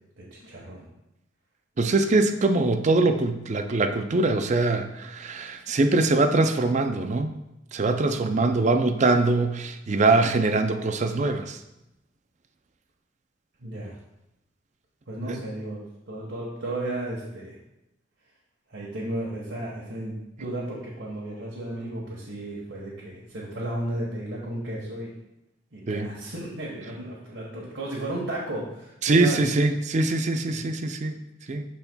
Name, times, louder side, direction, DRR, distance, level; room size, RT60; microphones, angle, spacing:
voice 1, 0.2-0.8 13.6-14.0 15.1-17.6 18.7-25.1 25.7-29.4 30.5-30.7, right 1 dB, 90° right, -5 dB, 1.3 m, -34 dB
voice 2, 1.8-7.3 7.7-11.6 15.3-15.4 25.9-26.1 29.0-31.2 31.5-31.7, right 2 dB, 40° right, 8 dB, 0.5 m, -23 dB
12.5 x 4.2 x 2.3 m, 0.89 s
head